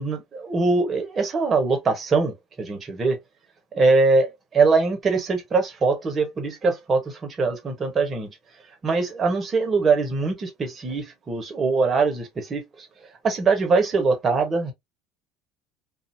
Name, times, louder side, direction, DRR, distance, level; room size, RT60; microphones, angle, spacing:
voice 1, 0.0-3.2 3.7-8.4 8.8-12.9 13.2-14.7, right 4 dB, 35° right, 1.3 m, -22 dB
2.7 x 2.7 x 2.7 m
hypercardioid pair, 70°, 0 cm